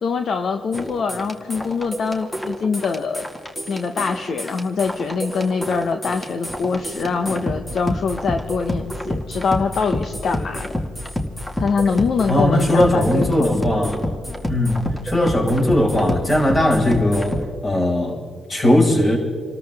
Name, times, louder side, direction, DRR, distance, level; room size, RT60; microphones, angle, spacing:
voice 1, 0.0-3.2 3.7-10.7 11.6-13.6, left 5 dB, 55° left, 6 dB, 1.0 m, -23 dB
sound 1, 0.7-17.5, left 1 dB, 15° left, 2.0 m, -28 dB
voice 2, 12.3-14.0 14.5-18.2 18.5-19.2, left 1 dB, 30° left, -2 dB, 5.5 m, -18 dB
28.0 x 13.5 x 3.6 m, 2.1 s
cardioid pair, 90°, 0 cm